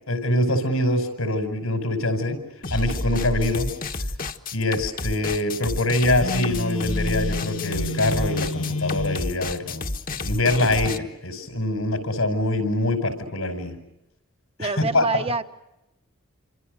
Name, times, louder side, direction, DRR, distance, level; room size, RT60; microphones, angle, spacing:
voice 1, 0.1-2.4 2.7-3.7 4.5-9.8 10.2-13.7 14.6-15.0, left 1 dB, 85° left, 7 dB, 5.4 m, -24 dB
sound 1, 2.6-11.0, left 2 dB, 40° left, 1.3 m, -30 dB
Telephone, 6.2-9.3, left 3 dB, 60° left, 1.8 m, -30 dB
voice 2, 14.6-15.4, right 3 dB, 25° right, 8 dB, 1.0 m, -26 dB
28.0 x 26.5 x 6.6 m, 0.91 s
head